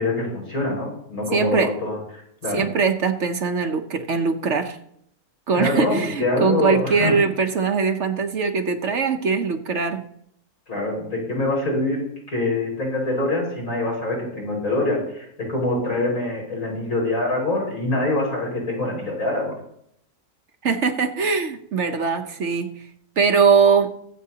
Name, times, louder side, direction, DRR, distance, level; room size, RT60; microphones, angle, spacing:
voice 1, 0.0-2.6 5.5-7.2 10.7-19.6, left 2 dB, 70° left, -2 dB, 5.9 m, -25 dB
voice 2, 1.3-1.7 2.5-4.8 5.5-10.0 20.6-22.8 23.2-23.9, right 5 dB, 55° right, 7 dB, 1.1 m, -21 dB
23.0 x 8.3 x 2.8 m, 0.71 s
omnidirectional pair, 1.6 m